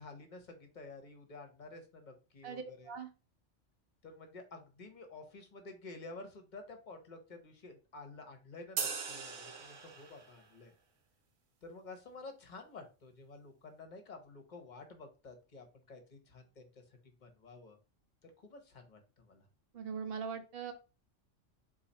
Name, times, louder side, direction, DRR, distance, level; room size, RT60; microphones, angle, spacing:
voice 1, 0.0-2.9 4.0-10.7 11.6-16.7 17.2-17.8 18.2-19.4, left 3 dB, 40° left, 5 dB, 1.0 m, -51 dB
voice 2, 2.4-3.1 19.7-20.7, right 6 dB, 55° right, 7 dB, 0.9 m, -41 dB
sound 1, 8.8-10.4, right 5 dB, 80° right, 1.2 m, -39 dB
4.0 x 2.8 x 4.1 m, 0.32 s
omnidirectional pair, 1.3 m